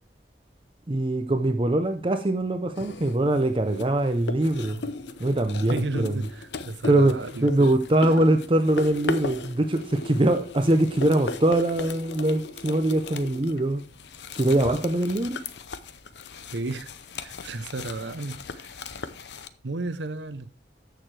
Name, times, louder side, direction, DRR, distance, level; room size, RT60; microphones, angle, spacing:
voice 1, 0.9-4.8 5.2-6.2 6.9-13.8 14.3-15.4, right 1 dB, 30° right, 0.6 m, -23 dB
sound 1, 2.7-19.5, left 3 dB, 75° left, 0.7 m, -37 dB
voice 2, 5.6-7.7 16.5-16.9 17.2-18.7 19.6-20.5, right 2 dB, 80° right, 0.8 m, -33 dB
13.5 x 6.7 x 3.3 m
head